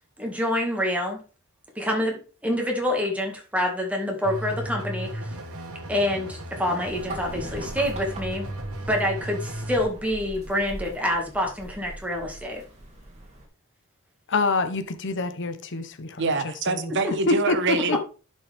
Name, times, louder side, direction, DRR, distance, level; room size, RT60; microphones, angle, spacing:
voice 1, 0.2-1.2 1.8-5.3 5.9-8.5 8.9-12.6, left 1 dB, 5° right, 2.0 m, -27 dB
sound 1, 4.2-9.9, right 1 dB, 90° right, 1.6 m, -35 dB
sound 2, 6.8-13.5, right 1 dB, 30° right, 2.6 m, -41 dB
voice 2, 14.3-16.3 16.7-16.9 17.3-18.0, left 3 dB, 55° left, 0.9 m, -26 dB
voice 3, 16.2-18.0, right 3 dB, 55° right, 1.2 m, -25 dB
11.0 x 5.5 x 3.5 m
head